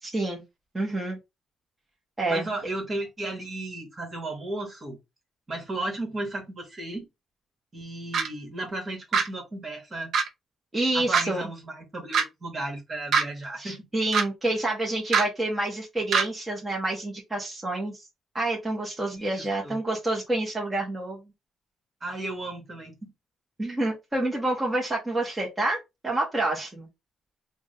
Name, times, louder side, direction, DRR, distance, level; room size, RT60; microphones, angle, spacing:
voice 1, 0.0-0.4 0.7-1.2 2.2-2.5 10.7-11.4 13.6-18.1 18.3-21.2 23.6-25.8 26.0-26.9, right 2 dB, 15° right, 1.5 m, -28 dB
voice 2, 2.3-5.0 5.5-7.1 7.7-10.1 10.9-13.8 19.1-19.8 22.0-23.1, right 2 dB, 35° right, 1.9 m, -34 dB
sound 1, 8.1-8.3 9.1-9.3 10.1-10.3 11.1-11.2 12.1-12.2 13.1-13.2 14.1-14.2 15.1-15.2 16.1-16.2, right 5 dB, 65° right, 0.8 m, -22 dB
3.8 x 2.6 x 3.8 m
cardioid pair, 90°, 0 cm